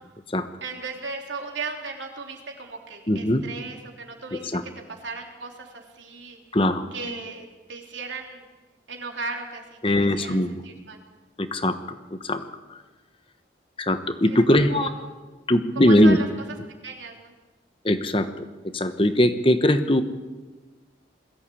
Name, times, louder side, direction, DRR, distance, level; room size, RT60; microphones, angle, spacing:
voice 1, 0.6-4.4 5.0-6.4 6.9-8.4 8.9-11.0 14.7-14.9 15.9-16.3 16.8-17.3, right 4 dB, 85° right, 2 dB, 3.4 m, -36 dB
voice 2, 3.1-3.4 4.3-4.6 6.5-7.3 9.8-10.6 11.4-12.4 12.7-12.8 13.8-14.9 15.5-16.2 17.8-18.5 18.7-20.0, left 1 dB, 30° left, 9 dB, 1.2 m, -21 dB
21.5 x 14.5 x 8.6 m, 1.2 s
head